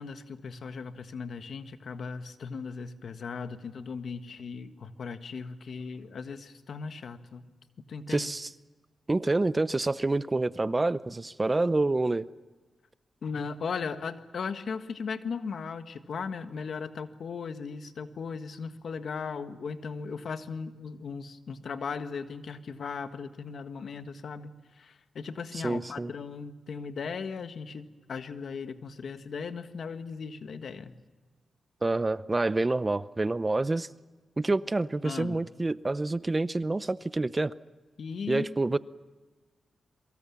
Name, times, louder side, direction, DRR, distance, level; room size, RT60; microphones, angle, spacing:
voice 1, 0.0-7.4 7.9-8.3 13.2-30.9 35.0-35.4 38.0-38.5, left 5 dB, 70° left, 9 dB, 1.6 m, -37 dB
voice 2, 8.1-8.5 9.1-12.3 25.6-26.1 31.8-33.9 34.4-37.5 38.3-38.8, right 2 dB, 25° right, 16 dB, 0.7 m, -27 dB
27.0 x 23.5 x 7.2 m, 1.2 s
cardioid pair, 70°, 0 cm